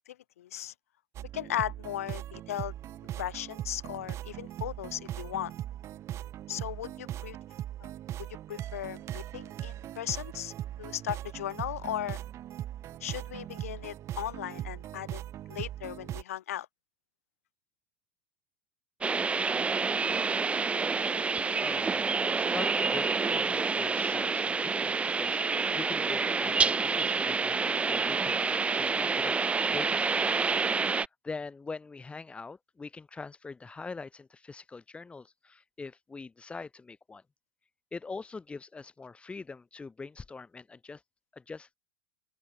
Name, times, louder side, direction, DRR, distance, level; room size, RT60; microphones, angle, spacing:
voice 1, 0.1-0.7 1.3-2.7 3.2-5.5 6.5-7.4 7.8-7.9 8.5-10.5 10.8-12.2 13.0-15.2 15.5-16.7, left 12 dB, 70° left, 0.9 m, -37 dB
sound 1, 1.1-16.2, right 12 dB, 35° right, 1.9 m, -40 dB
sound 2, 19.0-31.1, right 4 dB, 15° right, 1.0 m, -28 dB
voice 2, 21.4-29.4 29.7-30.6 30.9-37.2 37.9-41.0 41.3-41.8, left 4 dB, 15° left, 4.4 m, -43 dB
open air
hypercardioid pair, 90°, 8 cm